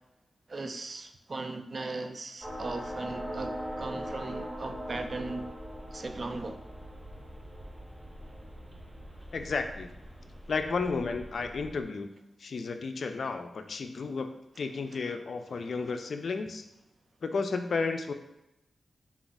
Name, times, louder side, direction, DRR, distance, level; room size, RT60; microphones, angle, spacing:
voice 1, 0.5-5.5 5.9-6.6, right 3 dB, 50° right, 7 dB, 0.4 m, -38 dB
sound 1, 2.4-11.8, equal, 10° right, 0.6 m, -41 dB
voice 2, 9.3-9.9 10.5-12.1 12.4-14.3 14.6-16.6 17.2-18.1, left 4 dB, 70° left, 7 dB, 0.3 m, -32 dB
4.2 x 2.3 x 3.9 m, 0.89 s
cardioid pair, 75°, 0 cm